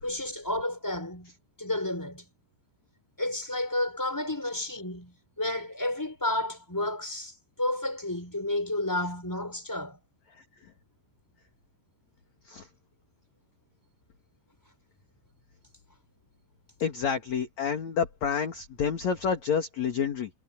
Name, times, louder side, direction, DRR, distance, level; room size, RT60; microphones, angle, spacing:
voice 1, 0.0-1.3 1.6-2.3 3.2-10.0, left 1 dB, 5° left, 5.4 m, -31 dB
voice 2, 16.8-20.3, left 7 dB, 50° left, 2.3 m, -29 dB
omnidirectional pair, 5.8 m